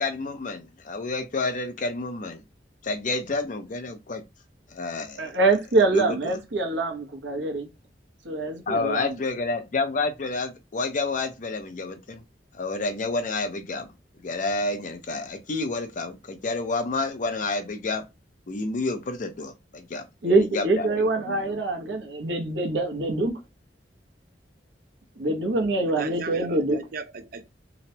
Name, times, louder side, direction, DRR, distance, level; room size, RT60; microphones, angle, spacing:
voice 1, 0.0-2.4 2.8-4.2 4.7-5.3 5.9-6.3 8.7-12.2 12.5-13.9 14.2-18.1 18.5-21.5, left 3 dB, 45° left, 0.5 m, -29 dB
voice 2, 5.2-7.7 8.2-9.2 20.2-23.3 25.2-26.8, right 2 dB, 90° right, 0.8 m, -24 dB
voice 3, 25.9-27.5, right 5 dB, 55° right, 0.4 m, -37 dB
2.9 x 2.1 x 2.7 m
head